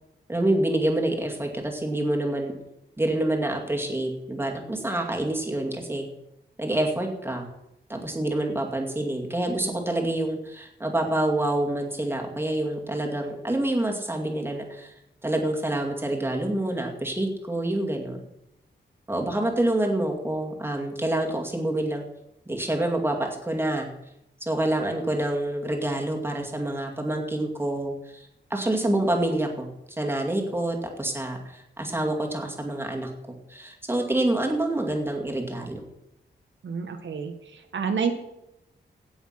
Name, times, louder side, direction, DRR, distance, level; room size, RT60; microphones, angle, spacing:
voice 1, 0.3-2.5 3.0-6.1 6.6-7.5 7.9-14.9 15.2-18.2 19.1-22.0 22.5-23.9 24.4-29.7 30.0-35.8, right 1 dB, 10° right, 1 dB, 2.3 m, -27 dB
voice 2, 36.6-38.1, right 6 dB, 75° right, 5 dB, 1.6 m, -29 dB
16.5 x 7.2 x 5.8 m, 0.85 s
wide cardioid pair, 130°, 19 cm